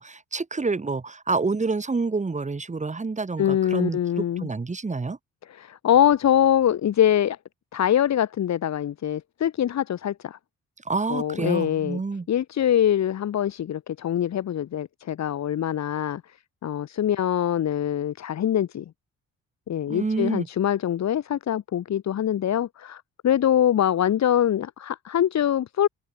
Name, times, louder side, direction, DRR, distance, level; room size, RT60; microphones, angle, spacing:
voice 1, 0.0-5.2 10.8-12.3 19.9-20.5, right 4 dB, 25° right, 2.6 m, -28 dB
voice 2, 3.4-4.5 5.5-7.4 7.7-10.4 11.1-12.0 12.3-16.2 16.6-18.8 19.7-25.9, left 10 dB, 65° left, 2.8 m, -23 dB
open air
cardioid pair, 90°, 30 cm